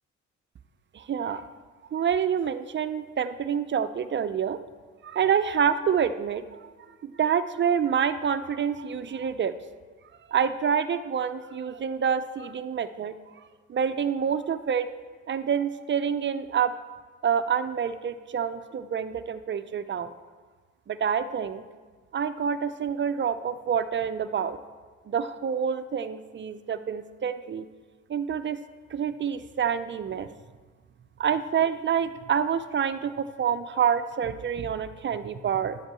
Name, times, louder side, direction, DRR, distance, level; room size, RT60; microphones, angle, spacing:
voice 1, 0.9-1.4 1.9-4.6 5.0-6.7 7.0-9.6 10.3-13.1 13.7-14.9 15.3-16.7 17.2-20.1 20.9-21.6 22.1-24.6 25.1-27.7 28.1-28.6 28.9-30.3 31.2-35.8, right 7 dB, 40° right, 11 dB, 0.5 m, -27 dB
9.9 x 5.2 x 7.5 m, 1.4 s
cardioid pair, 90°, 30 cm